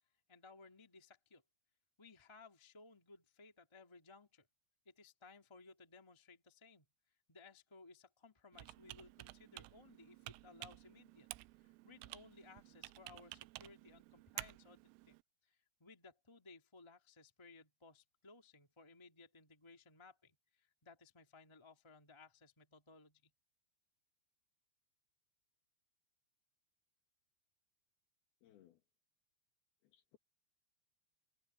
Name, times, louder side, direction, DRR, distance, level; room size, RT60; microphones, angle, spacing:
voice 1, 0.3-1.4 2.0-4.5 4.8-6.8 7.3-11.3 11.6-15.1 15.4-23.3, left 3 dB, 15° left, 0.9 m, -61 dB
Computer keyboard, 8.5-15.2, right 21 dB, 85° right, 3.2 m, -53 dB
voice 2, 28.4-28.8 29.8-30.2, left 12 dB, 60° left, 3.0 m, -66 dB
omnidirectional pair, 5.8 m